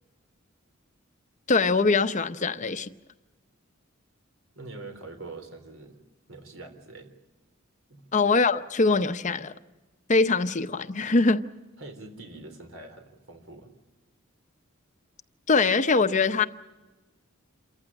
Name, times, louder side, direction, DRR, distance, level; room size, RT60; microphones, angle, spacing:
voice 1, 1.5-2.9 8.1-9.5 10.1-11.4 15.5-16.4, left 3 dB, 35° left, 0.8 m, -22 dB
voice 2, 4.5-6.0 6.3-7.1 7.9-8.1 11.8-13.7, right 2 dB, 75° right, 3.6 m, -44 dB
28.0 x 15.0 x 9.9 m
head